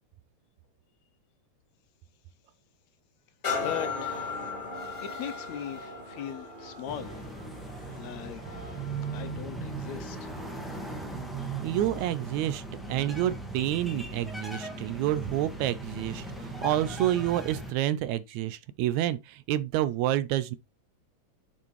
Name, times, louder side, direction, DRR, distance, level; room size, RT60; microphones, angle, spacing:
sound 1, 3.4-11.0 11.6-11.7, left 4 dB, 20° left, 1.4 m, -38 dB
voice 1, 3.6-4.2 5.0-7.1 7.9-8.4 9.1-10.3, left 10 dB, 75° left, 1.9 m, -39 dB
sound 2, 6.8-17.7, right 2 dB, ahead, 0.5 m, -38 dB
voice 2, 11.6-12.6 12.9-20.6, right 13 dB, 80° right, 1.9 m, -28 dB
6.8 x 6.0 x 3.1 m
omnidirectional pair, 3.4 m